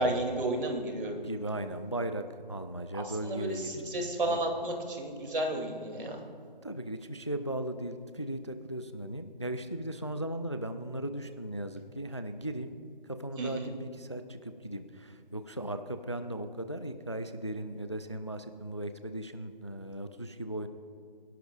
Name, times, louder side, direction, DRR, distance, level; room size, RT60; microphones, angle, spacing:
voice 1, 0.0-1.2 3.2-6.2 13.4-13.7, right 1 dB, 60° right, 2 dB, 2.6 m, -32 dB
voice 2, 1.2-4.4 6.6-12.7 13.1-20.7, right 1 dB, 30° left, 10 dB, 0.4 m, -37 dB
25.5 x 11.5 x 2.4 m, 2.4 s
figure-of-eight pair, 170°, 29 cm